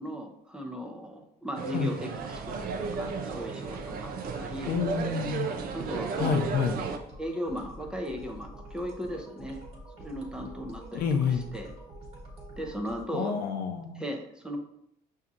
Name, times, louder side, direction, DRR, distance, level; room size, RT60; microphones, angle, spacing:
voice 1, 0.0-4.1 4.4-4.7 5.7-6.6 7.2-9.6 10.0-11.0 11.3-11.7 12.6-13.3 13.9-14.6, equal, 5° right, 1 dB, 0.6 m, -37 dB
sound 1, 1.6-7.0, right 5 dB, 60° right, 0.4 m, -34 dB
sound 2, 2.2-13.1, right 1 dB, 40° right, 1.4 m, -47 dB
voice 2, 4.7-5.5 6.2-6.8 10.9-11.5 13.1-14.0, left 6 dB, 65° left, 5 dB, 0.6 m, -28 dB
5.7 x 2.7 x 2.5 m, 0.75 s
cardioid pair, 110°, 17 cm